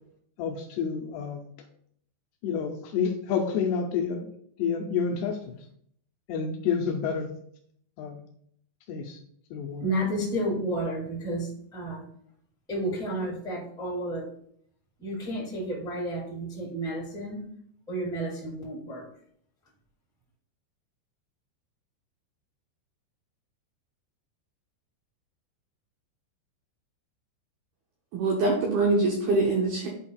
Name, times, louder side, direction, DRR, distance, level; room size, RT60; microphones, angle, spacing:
voice 1, 0.4-1.4 2.4-4.3 4.6-5.6 6.3-7.3 8.0-8.2 8.9-9.2 9.5-9.9, left 6 dB, 85° left, 2 dB, 2.4 m, -29 dB
voice 2, 9.8-12.1 12.7-14.3 15.0-17.4 17.9-19.1, right 1 dB, 5° left, -6 dB, 0.3 m, -31 dB
voice 3, 28.1-29.9, right 3 dB, 90° right, 0 dB, 2.1 m, -24 dB
11.0 x 4.3 x 2.3 m, 0.66 s
omnidirectional pair, 5.5 m